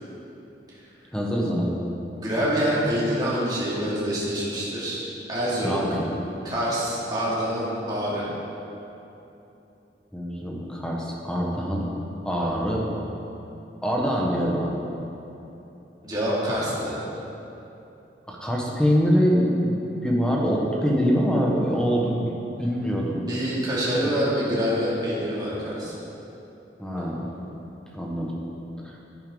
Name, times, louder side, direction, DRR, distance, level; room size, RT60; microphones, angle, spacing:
voice 1, 1.1-1.8 5.6-6.1 10.1-11.9 12.2-12.9 13.8-14.7 18.3-19.8 20.0-22.2 22.5-23.3 24.0-24.1 26.8-27.3 27.9-28.3 28.8-28.9, equal, 5° left, -3 dB, 1.3 m, -24 dB
voice 2, 2.1-5.9 6.4-8.2 16.0-17.0 23.2-25.9, equal, 25° right, -8 dB, 2.6 m, -26 dB
11.0 x 9.9 x 3.9 m, 3.0 s
head